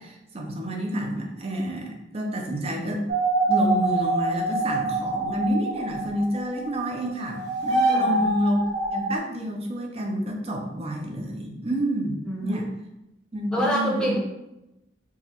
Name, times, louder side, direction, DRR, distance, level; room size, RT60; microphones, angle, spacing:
voice 1, 0.0-3.0 3.5-8.6 8.9-12.2 12.4-12.6 13.3-14.2, equal, 35° right, 1 dB, 0.6 m, -29 dB
sound 1, 3.1-6.9 7.2-9.2, right 2 dB, 65° right, 1.0 m, -25 dB
voice 2, 7.9-8.3 12.2-12.6 13.5-14.2, equal, 5° left, -4 dB, 0.7 m, -26 dB
4.6 x 2.2 x 2.9 m, 0.92 s
head